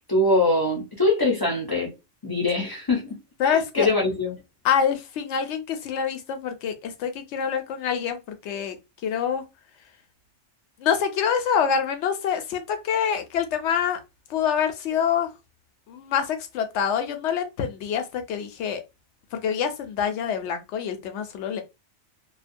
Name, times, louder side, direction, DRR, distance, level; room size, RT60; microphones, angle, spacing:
voice 1, 0.1-1.9 2.2-3.2 3.4-4.3, left 2 dB, 30° left, 0.5 m, -23 dB
voice 2, 3.4-3.9 4.6-9.4 10.8-14.0 14.3-15.3 15.9-18.8 19.3-21.6, left 7 dB, 75° left, 0.9 m, -26 dB
2.3 x 2.1 x 2.5 m
omnidirectional pair, 1.2 m